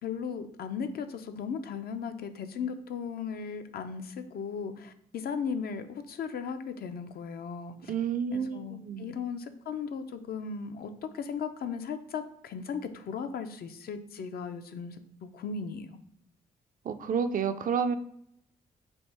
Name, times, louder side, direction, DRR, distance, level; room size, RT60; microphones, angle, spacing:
voice 1, 0.0-7.9 8.3-15.9, left 6 dB, 60° left, 8 dB, 0.5 m, -37 dB
voice 2, 7.9-9.1 16.8-18.0, right 6 dB, 50° right, 9 dB, 0.4 m, -30 dB
3.5 x 2.5 x 4.2 m, 0.70 s
supercardioid pair, 55°, 18 cm